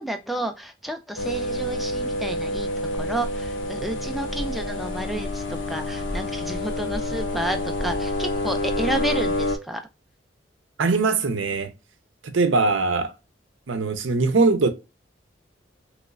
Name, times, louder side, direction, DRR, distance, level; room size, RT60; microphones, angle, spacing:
voice 1, 0.0-9.8, right 1 dB, ahead, 0.3 m, -31 dB
sound 1, 1.2-9.6, left 1 dB, 90° left, 0.7 m, -28 dB
voice 2, 10.8-11.7 12.3-13.1 13.7-14.7, right 3 dB, 90° right, 0.6 m, -21 dB
3.0 x 3.0 x 2.4 m
head